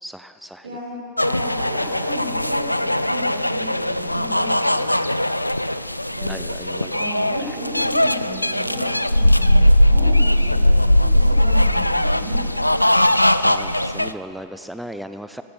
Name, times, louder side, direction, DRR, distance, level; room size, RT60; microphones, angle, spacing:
voice 1, 0.0-0.8 6.3-6.9 7.4-7.6 13.4-15.4, equal, ahead, 10 dB, 0.4 m, -37 dB
voice 2, 0.6-4.9 6.1-6.3 6.9-12.5, equal, 70° right, -4 dB, 4.3 m, -34 dB
sound 1, 1.2-14.1, left 1 dB, 85° left, 0.3 m, -19 dB
14.0 x 12.0 x 6.9 m, 2.6 s
figure-of-eight pair, 90°, 0 cm